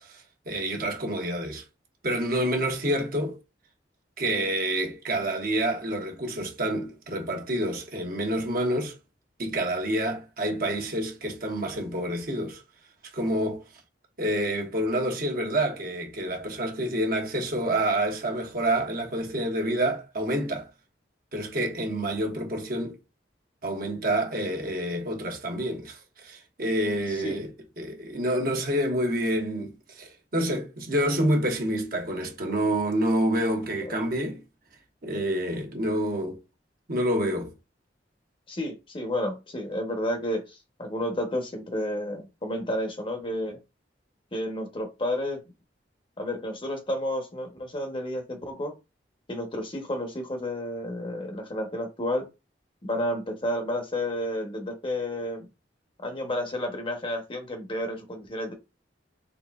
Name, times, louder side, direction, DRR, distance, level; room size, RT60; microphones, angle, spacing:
voice 1, 0.0-1.6 2.0-3.4 4.2-9.0 9.4-12.6 13.1-13.6 14.2-20.7 21.3-23.0 23.6-34.4 35.0-36.4 36.9-37.5, right 1 dB, 55° right, 1.1 m, -28 dB
voice 2, 38.5-43.6 44.3-45.4 46.2-48.7 49.3-52.3 52.8-55.5 56.0-58.5, left 1 dB, 30° left, 0.9 m, -31 dB
4.0 x 3.5 x 2.4 m
head